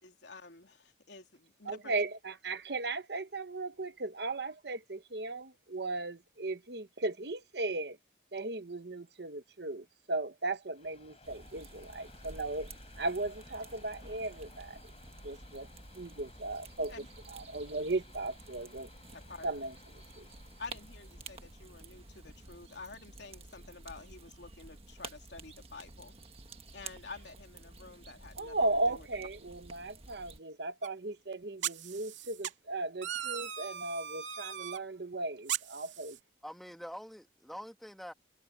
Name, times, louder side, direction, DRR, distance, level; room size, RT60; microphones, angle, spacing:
voice 1, 0.0-1.9 16.9-17.1 19.1-19.5 20.6-26.1 26.7-28.6 28.9-29.1, left 3 dB, 70° left, 3.0 m, -49 dB
voice 2, 1.6-8.0 8.3-12.7 13.0-14.8 15.2-15.7 15.9-16.9 17.3-18.9 19.4-19.7 20.2-20.3 28.4-36.2, right 2 dB, 60° right, 1.2 m, -36 dB
sound 1, 10.7-24.1, left 3 dB, 35° left, 3.9 m, -59 dB
sound 2, 11.2-30.4, right 3 dB, 30° right, 1.6 m, -51 dB
sound 3, 30.8-30.9 31.6-32.5 33.0-34.8 35.5-36.2, right 10 dB, 90° right, 2.4 m, -38 dB
voice 3, 36.4-38.1, equal, ahead, 1.5 m, -45 dB
head